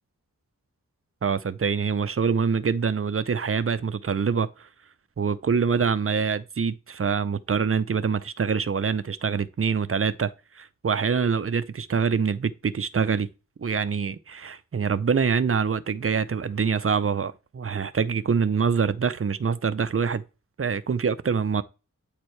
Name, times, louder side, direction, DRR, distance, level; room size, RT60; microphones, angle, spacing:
voice 1, 1.2-4.5 5.2-10.3 10.6-13.3 13.6-20.2 20.6-21.6, right 6 dB, 40° right, 0.5 m, -25 dB
8.7 x 4.4 x 3.2 m
wide cardioid pair, 75°, 34 cm